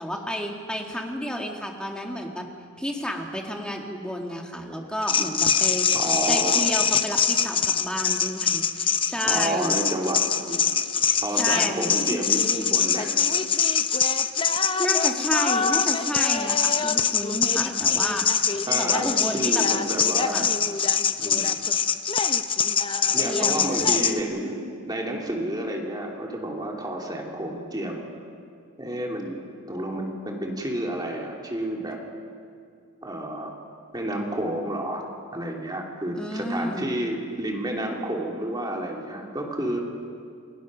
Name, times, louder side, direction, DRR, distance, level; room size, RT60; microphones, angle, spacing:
voice 1, 0.0-2.5 2.8-5.9 6.3-9.8 11.0-11.9 14.8-18.5 18.8-19.6 20.3-20.5 23.2-23.9 36.2-36.9, equal, 5° left, 1 dB, 2.0 m, -31 dB
sound 1, 5.0-24.2, left 7 dB, 25° left, 0.7 m, -23 dB
voice 2, 5.9-6.7 9.2-10.6 11.2-13.1 18.7-20.5 21.2-21.7 23.1-24.6 24.8-28.1 28.8-29.4 29.7-32.0 33.0-33.6 33.9-35.0 35.3-39.8, right 1 dB, 20° right, 0 dB, 2.8 m, -30 dB
28.5 x 18.5 x 6.3 m, 2.3 s
head